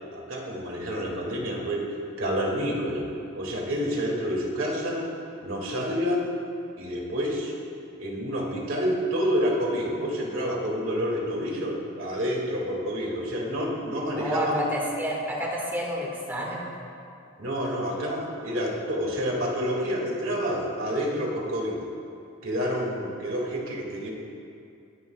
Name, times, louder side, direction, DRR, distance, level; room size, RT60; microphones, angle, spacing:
voice 1, 0.1-1.9 2.2-3.1 3.4-5.1 5.4-6.3 6.8-7.5 8.0-14.7 17.4-21.8 22.4-24.1, equal, 70° right, -3 dB, 2.3 m, -28 dB
voice 2, 14.1-16.6, equal, 10° right, -3 dB, 1.8 m, -29 dB
19.5 x 10.5 x 2.3 m, 2.5 s
head